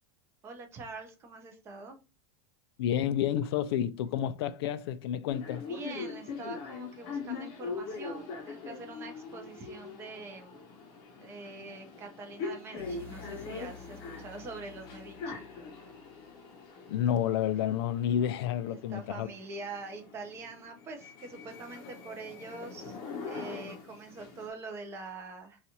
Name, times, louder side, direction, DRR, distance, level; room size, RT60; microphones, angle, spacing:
voice 1, 0.4-2.0 5.5-10.6 11.2-15.5 18.7-23.0 23.3-25.6, right 3 dB, 20° right, 0.6 m, -44 dB
voice 2, 2.8-5.6 16.9-19.3, left 10 dB, 80° left, 0.4 m, -30 dB
sound 1, 5.3-24.5, left 4 dB, 35° left, 0.7 m, -43 dB
sound 2, 12.8-16.7, left 4 dB, 15° left, 1.0 m, -50 dB
4.0 x 2.4 x 2.8 m
supercardioid pair, 175°, 13 cm